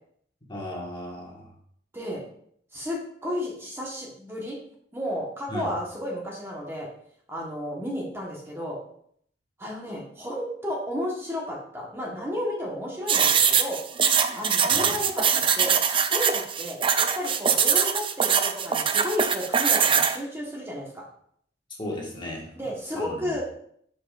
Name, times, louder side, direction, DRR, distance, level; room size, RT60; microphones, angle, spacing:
voice 1, 0.5-1.5 5.5-5.7 14.7-14.9 21.8-23.4, left 1 dB, 25° left, -2 dB, 1.6 m, -36 dB
voice 2, 2.7-4.6 4.9-6.9 7.3-8.8 9.6-13.8 14.3-15.7 16.1-21.0 22.6-23.4, left 1 dB, 15° right, -2 dB, 1.2 m, -32 dB
sound 1, 13.1-20.2, right 7 dB, 30° right, 0.4 m, -22 dB
10.5 x 5.2 x 2.5 m, 0.66 s
head